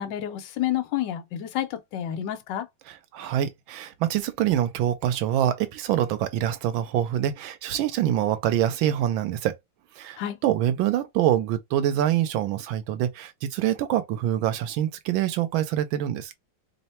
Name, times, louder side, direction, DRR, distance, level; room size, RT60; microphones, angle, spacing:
voice 1, 0.0-2.7 10.2-10.4, left 11 dB, 70° left, 1.3 m, -29 dB
voice 2, 2.9-9.6 10.0-16.3, right 11 dB, 85° right, 1.4 m, -25 dB
3.5 x 2.1 x 4.2 m
omnidirectional pair, 2.2 m